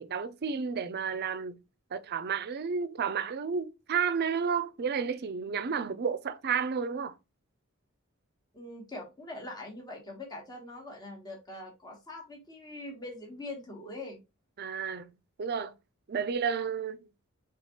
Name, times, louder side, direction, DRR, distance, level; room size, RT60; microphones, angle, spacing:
voice 1, 0.0-1.6 1.9-7.1 14.6-15.1 15.4-15.7 16.1-17.0, right 6 dB, 50° right, 0.5 m, -31 dB
voice 2, 8.5-14.2, left 2 dB, 20° left, 1.2 m, -43 dB
4.9 x 3.4 x 2.9 m
head